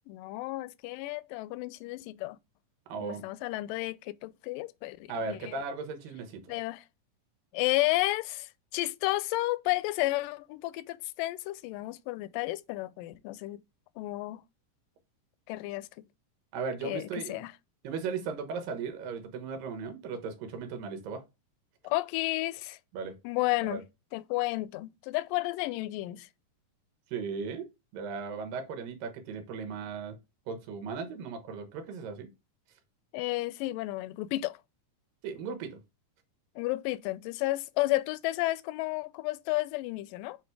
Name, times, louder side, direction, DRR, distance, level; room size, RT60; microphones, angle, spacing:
voice 1, 0.1-2.4 3.0-5.6 6.5-6.8 7.5-13.6 14.0-14.4 15.5-15.9 16.8-17.5 21.8-22.8 23.2-23.8 24.1-26.3 33.1-34.6 36.6-40.4, left 19 dB, 85° left, 2.1 m, -32 dB
voice 2, 2.9-3.2 5.1-6.4 16.5-17.4 17.8-21.2 22.9-23.2 23.6-23.8 27.1-27.7 27.9-30.2 30.5-32.3 35.2-35.8, right 5 dB, 90° right, 2.9 m, -37 dB
7.7 x 3.1 x 4.6 m
omnidirectional pair, 3.9 m